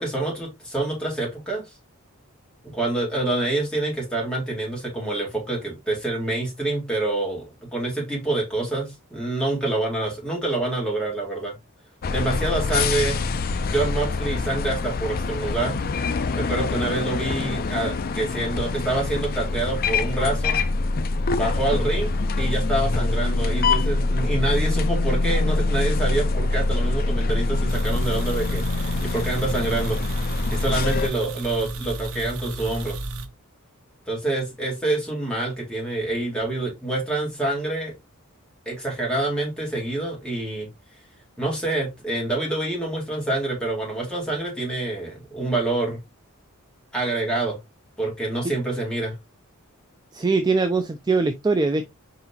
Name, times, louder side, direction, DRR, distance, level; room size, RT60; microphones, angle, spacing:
voice 1, 0.0-1.6 2.6-11.5 12.1-13.2 13.7-15.8 16.4-20.6 21.3-22.1 22.4-30.0 30.5-33.0 34.1-37.9 38.7-40.7 41.4-46.0 46.9-47.6 48.0-49.1, right 2 dB, 5° left, 2.1 m, -26 dB
sound 1, 12.0-31.1, left 3 dB, 45° left, 0.4 m, -24 dB
sound 2, 27.7-33.3, right 3 dB, 80° right, 0.8 m, -33 dB
voice 2, 50.1-51.9, right 3 dB, 20° right, 0.3 m, -22 dB
4.8 x 4.0 x 2.7 m
head